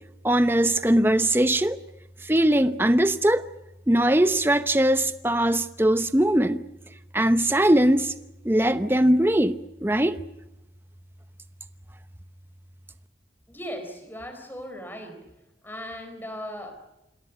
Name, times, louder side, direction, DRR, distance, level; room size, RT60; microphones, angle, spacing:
voice 1, 0.2-1.8 2.2-3.4 3.9-6.6 7.1-8.1 8.4-10.2, right 1 dB, 15° right, 0.8 m, -21 dB
voice 2, 13.5-15.3 15.6-16.7, equal, 10° left, 4.1 m, -37 dB
27.0 x 17.5 x 8.2 m
head